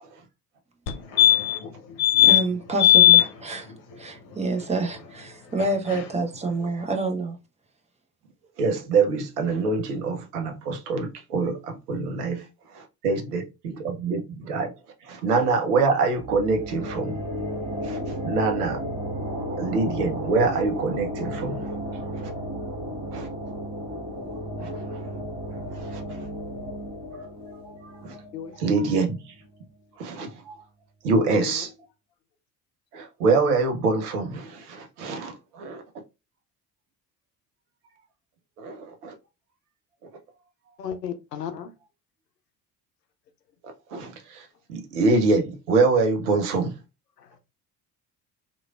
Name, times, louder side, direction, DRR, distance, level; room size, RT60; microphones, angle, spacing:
sound 1, 0.9-1.0 1.2-1.7 2.0-2.4 2.8-3.2 5.6-5.7 5.9-6.0, left 13 dB, 50° left, 0.8 m, -16 dB
voice 1, 2.2-7.4, right 3 dB, 15° right, 0.6 m, -28 dB
voice 2, 8.6-12.4 13.0-14.7 15.1-17.2 17.8-18.8 19.6-21.7 22.2-22.3 23.1-23.3 24.6-25.0 25.8-26.0 27.8-28.2 28.6-29.2 30.0-30.6 31.0-31.7 32.9-35.8 38.6-39.1 43.9-46.7, right 3 dB, 70° right, 0.8 m, -25 dB
sound 2, 16.1-29.5, equal, 35° right, 1.7 m, -34 dB
voice 3, 31.2-31.6 40.8-41.7, left 8 dB, 80° left, 0.6 m, -34 dB
3.0 x 2.5 x 2.3 m
figure-of-eight pair, 55°, 48 cm